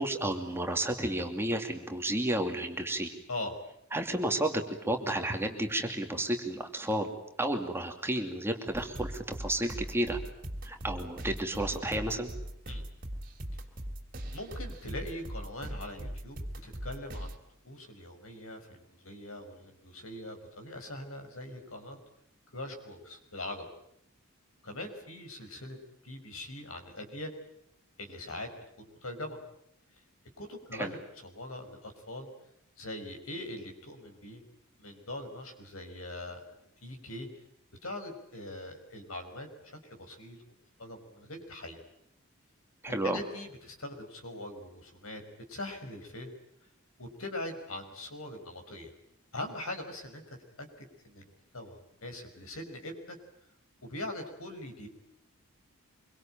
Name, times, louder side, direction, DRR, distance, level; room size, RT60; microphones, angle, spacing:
voice 1, 0.0-3.1 3.9-7.1 7.4-10.2 10.6-12.3 30.7-30.9 42.8-43.2, right 1 dB, 10° right, 4 dB, 2.6 m, -32 dB
sound 1, 8.7-17.4, equal, 45° right, 3.3 m, -40 dB
voice 2, 14.3-17.4 17.6-22.0 22.5-23.7 24.6-27.4 28.0-29.4 30.4-32.3 32.8-34.4 34.8-36.4 36.8-37.3 37.8-40.4 40.8-41.8 42.9-45.2 45.5-46.3 47.0-48.9 49.3-53.2 53.8-54.9, left 1 dB, 80° left, 6 dB, 5.6 m, -42 dB
25.5 x 24.0 x 9.0 m, 0.76 s
head